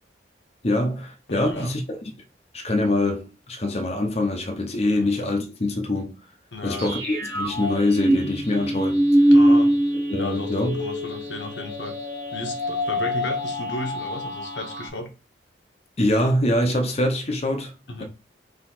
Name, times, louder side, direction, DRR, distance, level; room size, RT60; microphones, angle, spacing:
voice 1, 0.6-2.0 2.5-6.1 6.6-9.0 10.1-10.8 16.0-17.7, left 1 dB, 35° left, 0.7 m, -24 dB
voice 2, 1.3-1.7 4.9-5.1 6.5-7.0 9.3-9.7 10.2-12.0 12.3-15.1 17.9-18.0, left 2 dB, 90° left, 1.2 m, -34 dB
sound 1, 6.8-14.9, equal, 60° right, 1.7 m, -23 dB
3.9 x 2.9 x 4.3 m
head